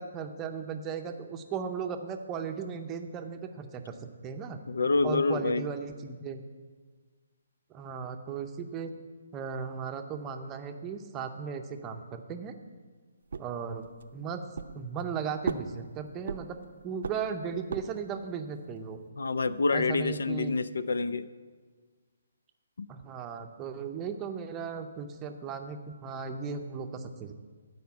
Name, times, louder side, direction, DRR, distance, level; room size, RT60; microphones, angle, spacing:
voice 1, 0.0-3.9 4.2-4.6 5.0-6.4 7.7-8.9 9.3-12.5 13.4-13.9 14.1-14.4 14.7-16.6 16.8-19.0 19.7-20.5 22.9-27.3, right 6 dB, 15° right, 6 dB, 0.6 m, -36 dB
voice 2, 4.7-5.6 19.2-21.3 22.8-22.9, left 3 dB, 85° left, 14 dB, 0.5 m, -27 dB
sound 1, 13.3-14.1 14.6-15.1 15.4-16.7 17.0-18.1, right 5 dB, 70° right, 0.6 m, -36 dB
14.0 x 4.9 x 7.1 m, 1.5 s
hypercardioid pair, 160°, 0 cm